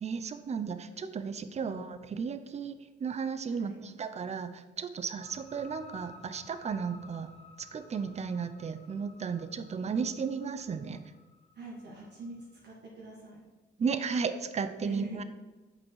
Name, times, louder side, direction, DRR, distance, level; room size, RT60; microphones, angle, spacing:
voice 1, 0.0-7.3 7.6-11.0 13.8-15.2, right 5 dB, 35° right, 11 dB, 0.6 m, -34 dB
voice 2, 3.5-3.8 11.5-13.4 14.8-15.2, right 2 dB, 60° right, -4 dB, 1.9 m, -44 dB
sound 1, 5.0-12.5, left 3 dB, 35° left, 1.2 m, -55 dB
7.2 x 5.4 x 4.7 m, 1.2 s
cardioid pair, 90°, 20 cm